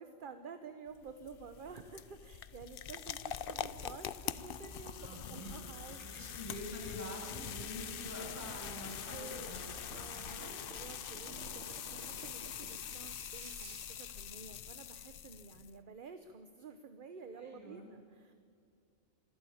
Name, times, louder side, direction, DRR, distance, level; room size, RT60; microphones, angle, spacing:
voice 1, 0.0-6.1 9.1-18.3, right 5 dB, 45° right, 9 dB, 1.0 m, -51 dB
sound 1, 0.9-15.7, left 9 dB, 55° left, 0.7 m, -44 dB
sound 2, 3.2-10.3, right 2 dB, 35° left, 4.9 m, -57 dB
Brake Concrete Med Speed OS, 3.2-14.2, right 5 dB, 85° right, 1.7 m, -57 dB
voice 2, 5.0-5.5 6.0-10.6 17.3-17.9, equal, 15° right, -3 dB, 7.1 m, -47 dB
25.5 x 12.5 x 8.6 m, 2.3 s
omnidirectional pair, 1.3 m